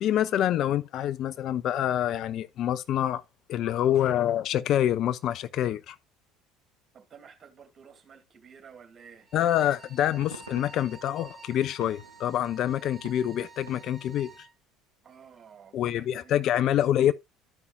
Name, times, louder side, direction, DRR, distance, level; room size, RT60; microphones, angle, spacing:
voice 1, 0.0-3.2 3.5-6.0 9.3-14.3 15.7-17.1, left 11 dB, 50° left, 0.5 m, -26 dB
voice 2, 6.9-9.3 15.0-16.4, right 7 dB, 35° right, 2.6 m, -52 dB
sound 1, 9.1-9.3 9.8-14.4, right 4 dB, 85° right, 0.7 m, -51 dB
Bowed string instrument, 9.2-14.5, right 4 dB, 5° right, 3.3 m, -51 dB
13.5 x 5.4 x 2.3 m
figure-of-eight pair, 65°, 0 cm